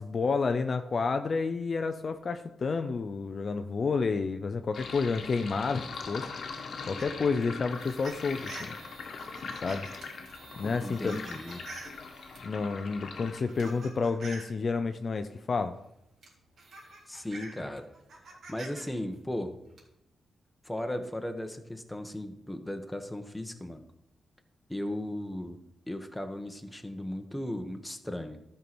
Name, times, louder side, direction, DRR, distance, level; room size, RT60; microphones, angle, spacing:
voice 1, 0.0-6.2 6.8-8.8 9.6-9.9 10.6-11.2 12.4-15.8, left 4 dB, 50° left, 8 dB, 0.6 m, -30 dB
Sink (filling or washing), 4.7-13.4, left 4 dB, 65° left, 1.4 m, -41 dB
sound 1, 7.0-12.5 13.2-14.5 15.8-15.9 16.2-18.8 19.1-19.8, right 2 dB, 70° right, 3.5 m, -47 dB
voice 2, 10.8-11.6 17.1-17.9 18.5-19.6 20.6-23.8 24.7-25.6 25.9-28.4, left 1 dB, 10° left, 6 dB, 1.3 m, -36 dB
12.5 x 5.7 x 6.2 m, 0.83 s
cardioid pair, 90°, 0 cm